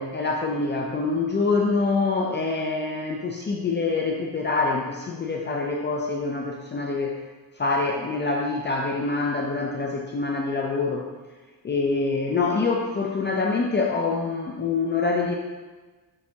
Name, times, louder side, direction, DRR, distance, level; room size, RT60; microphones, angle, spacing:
voice 1, 0.0-7.2 7.6-11.1 11.6-15.3, left 3 dB, 30° left, 0 dB, 0.4 m, -25 dB
6.3 x 6.1 x 2.8 m, 1.3 s
cardioid pair, 145°, 40 cm